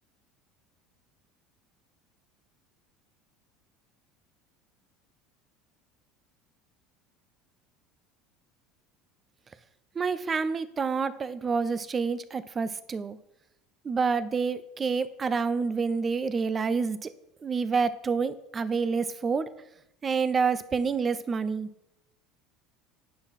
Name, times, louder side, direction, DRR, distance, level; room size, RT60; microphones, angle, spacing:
voice 1, 10.0-13.2 13.8-17.1 17.4-19.5 20.0-21.7, right 5 dB, 15° right, 15 dB, 0.5 m, -28 dB
10.5 x 9.7 x 4.1 m, 0.83 s
cardioid pair, 175°, 0 cm